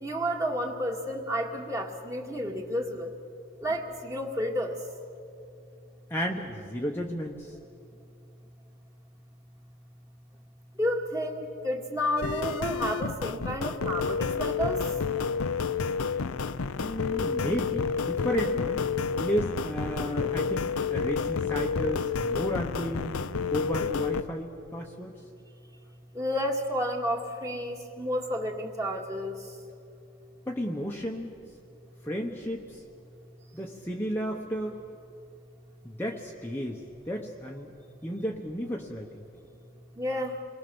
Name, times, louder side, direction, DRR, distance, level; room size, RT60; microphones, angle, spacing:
voice 1, 0.0-3.1 3.6-4.7 10.8-14.8 26.1-29.3 40.0-40.4, equal, 15° right, 1 dB, 2.0 m, -31 dB
voice 2, 6.1-7.5 16.8-18.9 19.2-23.2 23.5-25.1 30.5-31.3 32.0-32.8 33.5-34.8 35.8-37.7 38.0-39.2, equal, 10° left, -1 dB, 1.1 m, -33 dB
sound 1, 12.2-24.2, left 5 dB, 75° left, 0.6 m, -30 dB
28.5 x 21.5 x 7.1 m, 2.5 s
head